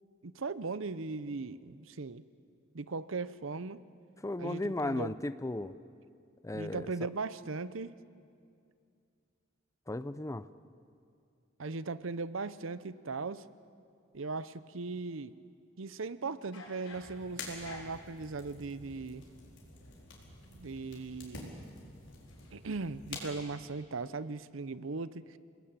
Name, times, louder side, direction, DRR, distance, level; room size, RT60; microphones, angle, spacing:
voice 1, 0.2-2.2 2.7-3.8 4.4-5.1 6.5-7.9 11.6-13.4 14.1-15.3 15.8-19.2 20.5-21.6 22.5-25.4, right 3 dB, 70° right, 15 dB, 0.7 m, -38 dB
voice 2, 4.2-5.8 6.4-6.9 9.9-10.5, left 2 dB, 15° left, 14 dB, 0.6 m, -35 dB
sound 1, 14.6-15.1 16.3-18.1 19.2-23.0 23.3-23.7, left 3 dB, 80° left, 5.1 m, -55 dB
sound 2, 16.9-23.2, left 3 dB, 60° left, 4.9 m, -48 dB
28.0 x 19.5 x 8.8 m, 2.4 s
head